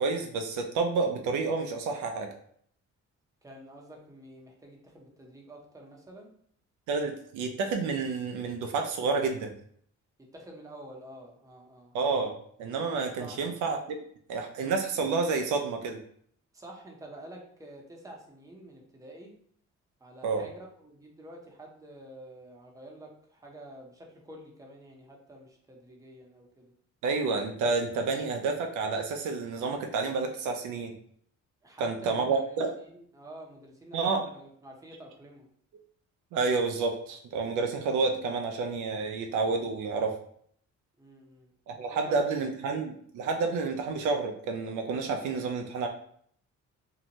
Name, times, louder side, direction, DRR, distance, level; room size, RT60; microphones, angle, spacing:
voice 1, 0.0-2.3 6.9-9.5 11.9-14.0 14.3-16.0 20.2-20.4 27.0-31.0 31.8-32.7 33.9-34.2 36.3-40.1 41.7-45.9, right 4 dB, 75° right, 4 dB, 0.5 m, -29 dB
voice 2, 3.4-6.3 10.3-11.9 13.2-13.4 16.5-19.3 20.0-26.7 31.6-35.5 41.0-41.5 41.8-42.3, right 1 dB, 10° right, 0 dB, 0.6 m, -48 dB
2.6 x 2.1 x 2.8 m, 0.63 s
cardioid pair, 90°, 30 cm